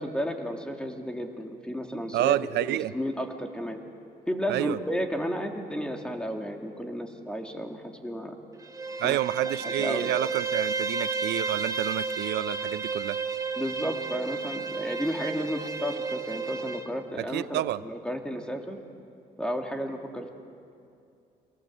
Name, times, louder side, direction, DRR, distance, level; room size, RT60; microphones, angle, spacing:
voice 1, 0.0-2.4 2.7-3.8 4.3-8.4 9.0-9.2 9.6-10.1 13.6-18.8 19.4-20.3, equal, 5° left, 3 dB, 2.8 m, -33 dB
voice 2, 2.1-2.9 4.5-4.8 9.0-13.2 17.2-17.8, right 14 dB, 85° right, 16 dB, 0.6 m, -29 dB
Bowed string instrument, 8.6-16.9, right 4 dB, 20° right, 1.8 m, -32 dB
26.0 x 18.5 x 7.9 m, 2.5 s
cardioid pair, 75°, 17 cm